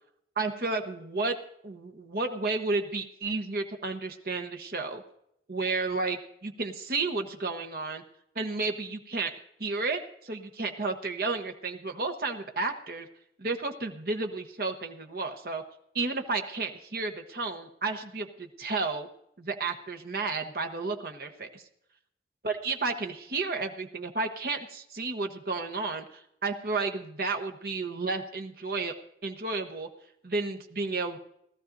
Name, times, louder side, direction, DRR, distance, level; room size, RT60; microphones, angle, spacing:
voice 1, 0.4-1.4 1.6-5.0 5.5-8.0 8.3-9.3 9.6-13.1 13.4-15.6 15.9-19.1 19.4-21.6 22.4-28.9 29.2-29.9 30.2-31.2, right 3 dB, 55° right, 4 dB, 1.0 m, -32 dB
19.0 x 13.5 x 2.6 m, 0.74 s
head